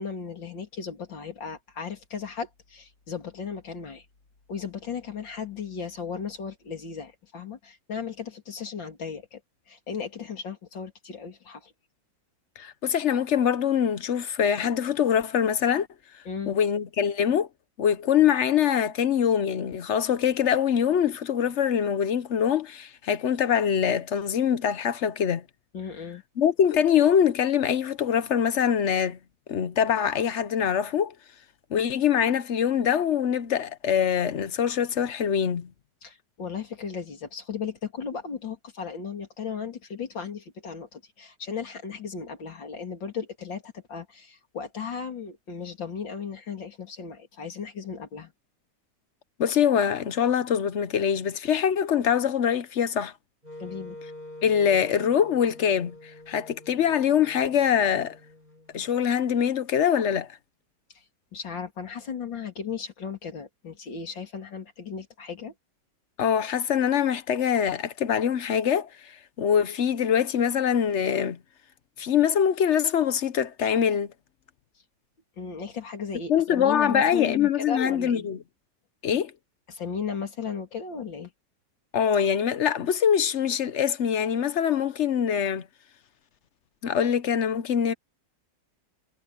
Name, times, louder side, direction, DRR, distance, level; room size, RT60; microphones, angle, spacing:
voice 1, 0.0-4.1 4.5-9.4 9.7-11.7 16.3-16.5 25.7-26.2 36.0-48.3 53.6-54.0 60.9-61.0 61.3-65.5 75.4-78.3 79.7-81.3, left 6 dB, 80° left, 3.6 m, -36 dB
voice 2, 12.6-15.9 16.5-17.5 17.8-25.4 26.4-29.2 29.5-31.1 31.7-35.7 49.4-53.1 54.4-56.0 56.3-58.2 58.7-60.3 66.2-69.1 69.4-71.4 72.0-74.1 76.3-78.4 79.0-79.3 81.9-85.6 86.8-87.9, left 8 dB, 55° left, 0.8 m, -24 dB
Wind instrument woodwind instrument, 53.4-59.5, left 1 dB, 20° right, 5.6 m, -46 dB
omnidirectional pair, 2.0 m